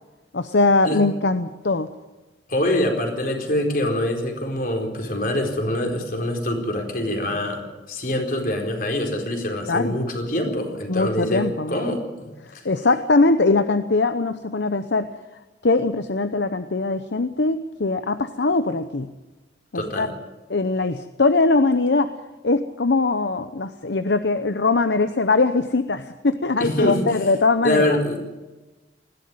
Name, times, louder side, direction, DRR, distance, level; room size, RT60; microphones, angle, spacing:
voice 1, 0.3-1.9 9.7-10.0 10.9-11.8 12.4-15.1 15.6-19.1 19.7-20.1 20.5-22.1 22.4-28.0, left 3 dB, 70° left, 10 dB, 0.9 m, -21 dB
voice 2, 2.5-7.6 7.9-12.7 19.7-20.1 26.6-27.0 27.6-28.3, left 1 dB, 50° left, 3 dB, 4.3 m, -24 dB
20.5 x 16.0 x 9.7 m, 1.1 s
head